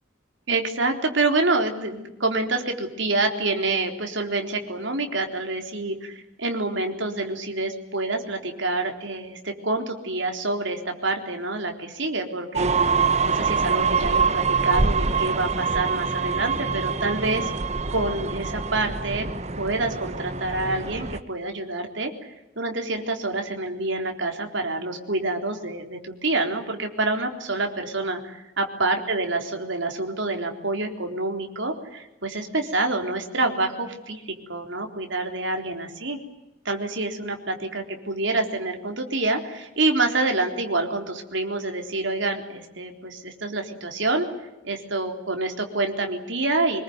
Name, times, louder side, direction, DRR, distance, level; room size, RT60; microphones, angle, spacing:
voice 1, 0.5-17.5 17.9-19.3 19.6-36.2 36.7-44.3 44.6-46.8, right 2 dB, 70° right, 4 dB, 3.8 m, -27 dB
sound 1, 12.5-21.2, right 5 dB, 35° right, 0.9 m, -25 dB
25.0 x 22.0 x 9.5 m, 0.96 s
head